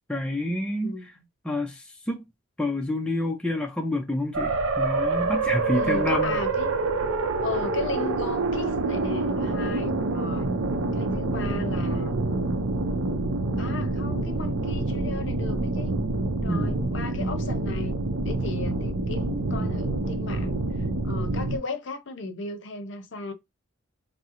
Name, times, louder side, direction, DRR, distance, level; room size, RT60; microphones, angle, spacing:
voice 1, 0.1-0.9 1.5-2.2 2.6-6.4 16.5-16.9, left 1 dB, 5° left, 0.3 m, -28 dB
voice 2, 0.8-1.3 5.7-6.7 7.4-10.5 10.9-12.2 13.6-16.0 16.4-20.7 21.0-23.3, left 3 dB, 60° left, 0.6 m, -36 dB
sound 1, 4.3-21.6, right 2 dB, 80° right, 0.5 m, -27 dB
3.6 x 2.0 x 2.8 m
head